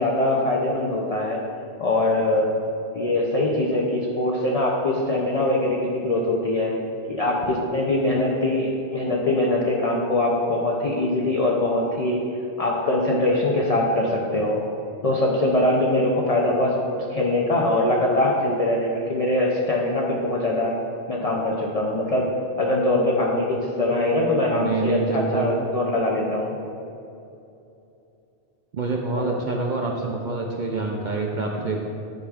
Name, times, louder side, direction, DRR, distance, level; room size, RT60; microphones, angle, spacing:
voice 1, 0.0-1.4 1.8-2.5 2.9-6.7 7.1-12.2 12.6-14.6 15.0-20.7 21.1-22.3 22.6-26.6 29.2-29.4, left 1 dB, 45° left, -2 dB, 0.5 m, -22 dB
voice 2, 24.5-25.5 28.7-31.8, right 3 dB, 55° right, 0 dB, 0.5 m, -26 dB
10.0 x 5.0 x 2.4 m, 2.8 s
omnidirectional pair, 1.2 m